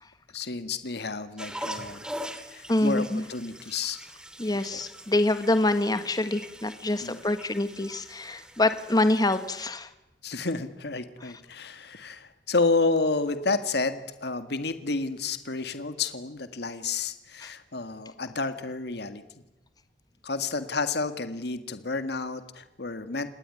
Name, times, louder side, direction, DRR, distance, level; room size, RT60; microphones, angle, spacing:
voice 1, 0.3-2.1 2.5-4.0 4.5-4.8 7.0-7.2 10.2-19.2 20.2-23.3, left 3 dB, 65° left, 10 dB, 1.8 m, -30 dB
sound 1, 1.4-9.7, equal, 5° right, 2.8 m, -42 dB
voice 2, 2.7-3.3 4.4-9.9 17.4-17.5, left 2 dB, 20° left, 10 dB, 1.5 m, -26 dB
27.5 x 20.0 x 9.8 m, 0.99 s
head